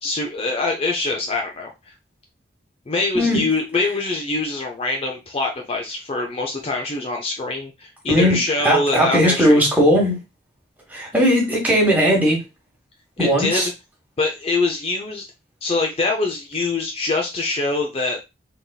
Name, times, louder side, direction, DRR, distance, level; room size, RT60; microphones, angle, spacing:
voice 1, 0.0-1.7 2.9-9.6 13.2-13.7 14.2-15.2 15.6-18.3, left 3 dB, 30° left, 2 dB, 0.5 m, -24 dB
voice 2, 8.1-10.2 10.9-12.4 13.2-13.7, equal, 10° right, -2 dB, 1.4 m, -18 dB
3.9 x 3.5 x 2.3 m, 0.24 s
head